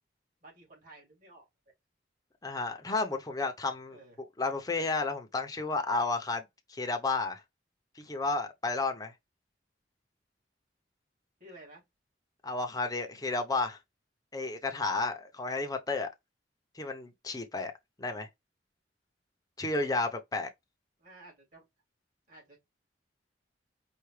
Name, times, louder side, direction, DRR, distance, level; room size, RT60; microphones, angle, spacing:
voice 1, 0.4-1.5 3.9-4.2 11.4-11.8 21.0-21.6 22.3-22.6, right 2 dB, 50° right, 3.2 m, -53 dB
voice 2, 2.4-4.0 4.4-6.4 6.7-7.4 8.0-9.1 12.4-13.8 14.3-16.1 16.7-17.7 18.0-18.3 19.6-20.5, left 3 dB, 20° left, 0.8 m, -32 dB
4.8 x 2.4 x 3.2 m
head